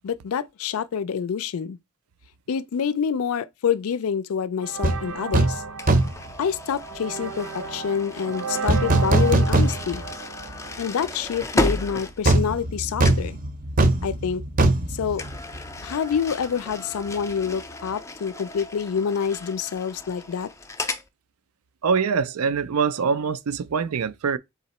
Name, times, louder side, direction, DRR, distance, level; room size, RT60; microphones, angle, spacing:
voice 1, 0.0-1.8 2.5-5.6 6.4-10.0 10.8-13.4 14.0-14.4 14.9-15.2 15.8-20.5, left 7 dB, 75° left, 0.4 m, -27 dB
sound 1, 4.6-11.4, right 5 dB, 70° right, 0.9 m, -34 dB
sound 2, 4.8-5.0 5.3-5.6 5.9-6.3 8.7-10.1 10.5-10.6 12.2-15.9 16.2-16.3, right 2 dB, 40° right, 0.6 m, -21 dB
sound 3, 5.8-12.8 13.0-13.4 15.1-21.1, left 2 dB, 15° left, 0.4 m, -34 dB
voice 2, 21.8-24.4, right 5 dB, 90° right, 0.4 m, -24 dB
4.0 x 2.9 x 4.1 m
head